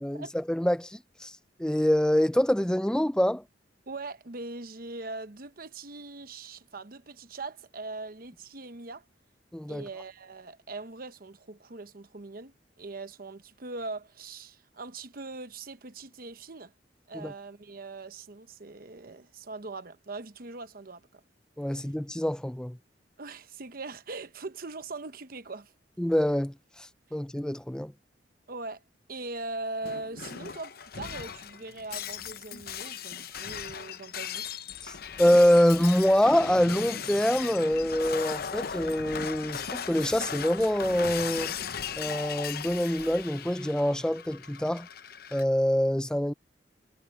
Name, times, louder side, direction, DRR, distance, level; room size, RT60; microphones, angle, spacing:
voice 1, 0.0-3.4 9.5-9.9 17.1-17.3 21.6-22.8 26.0-27.9 34.8-41.5 42.0-44.9 45.3-46.3, equal, 5° left, 0.4 m, -25 dB
voice 2, 3.9-9.0 9.7-16.7 17.1-21.2 23.2-25.7 28.5-28.8 29.1-34.5, right 3 dB, 55° right, 1.0 m, -41 dB
Shatter, 29.8-45.4, left 7 dB, 55° left, 0.7 m, -38 dB
head